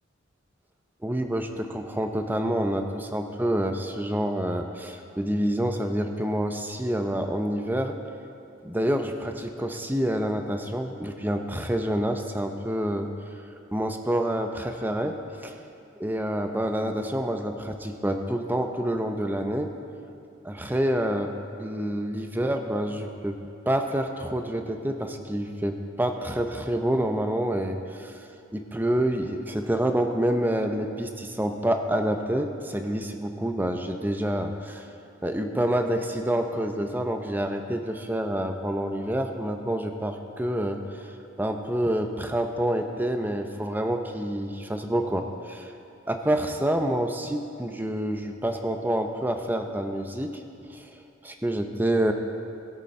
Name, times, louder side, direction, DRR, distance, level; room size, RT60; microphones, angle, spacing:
voice 1, 1.0-7.9 8.6-13.1 13.7-15.1 15.4-15.6 16.0-19.7 20.4-23.3 23.7-34.9 35.2-45.7 46.1-50.4 50.7-52.1, right 1 dB, 10° right, 5 dB, 0.6 m, -27 dB
20.0 x 6.8 x 4.3 m, 2.6 s
head